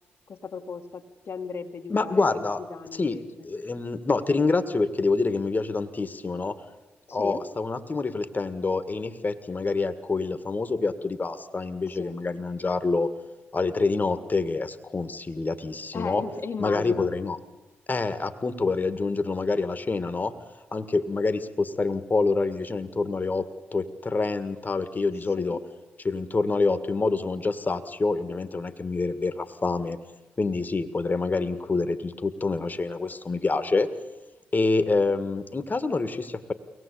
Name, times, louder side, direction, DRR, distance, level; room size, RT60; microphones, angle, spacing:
voice 1, 0.3-3.2 7.1-7.4 11.9-12.1 15.9-17.1 25.4-25.6, left 5 dB, 55° left, 2 dB, 1.7 m, -36 dB
voice 2, 1.9-2.6 2.9-3.2 3.4-6.6 7.1-13.1 13.5-16.2 16.6-17.4 17.9-20.3 20.7-23.5 23.7-25.6 26.0-30.0 30.4-33.9 34.5-36.5, left 3 dB, 35° left, 11 dB, 1.9 m, -26 dB
23.5 x 18.5 x 8.5 m, 1.1 s
hypercardioid pair, 40°, 5 cm